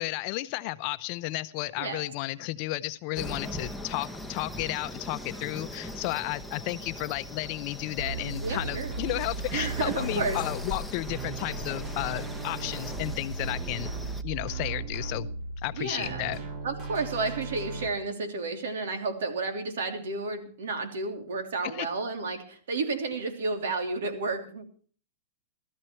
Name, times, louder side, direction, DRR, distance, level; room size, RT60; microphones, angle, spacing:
voice 1, 0.0-13.9 14.2-15.3 15.6-16.4 21.6-21.9, left 18 dB, 45° left, 0.7 m, -33 dB
sound 1, 3.2-14.2, left 1 dB, ahead, 0.9 m, -40 dB
sound 2, 8.0-17.9, right 3 dB, 35° right, 1.7 m, -36 dB
voice 2, 8.4-8.9 9.5-10.4 15.7-24.6, right 3 dB, 85° right, 2.9 m, -32 dB
16.0 x 13.5 x 4.5 m
supercardioid pair, 145°, 0 cm